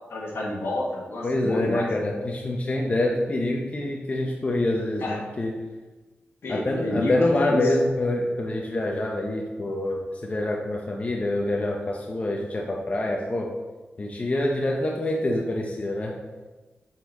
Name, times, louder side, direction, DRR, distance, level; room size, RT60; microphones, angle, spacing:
voice 1, 0.1-1.9 5.0-5.2 6.4-7.1 7.4-7.6, left 2 dB, 75° left, -3 dB, 1.3 m, -30 dB
voice 2, 1.2-5.5 6.5-13.5 14.0-16.1, left 1 dB, 35° left, 0 dB, 0.7 m, -26 dB
7.3 x 4.1 x 4.1 m, 1.2 s
wide cardioid pair, 110°, 4 cm